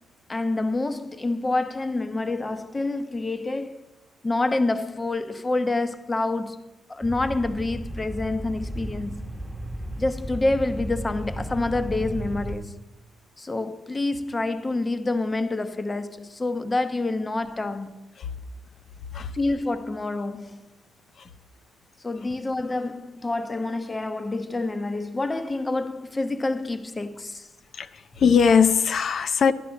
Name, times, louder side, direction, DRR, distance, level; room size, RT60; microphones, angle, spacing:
voice 1, 0.3-3.8 4.2-9.3 10.0-12.8 13.4-18.0 19.3-20.7 22.0-27.5, left 2 dB, 20° left, 0.9 m, -27 dB
sound 1, 7.0-12.6, right 1 dB, ahead, 1.2 m, -34 dB
voice 2, 27.7-29.5, left 6 dB, 50° left, 0.7 m, -20 dB
12.0 x 11.0 x 6.0 m
cardioid pair, 105°, 0 cm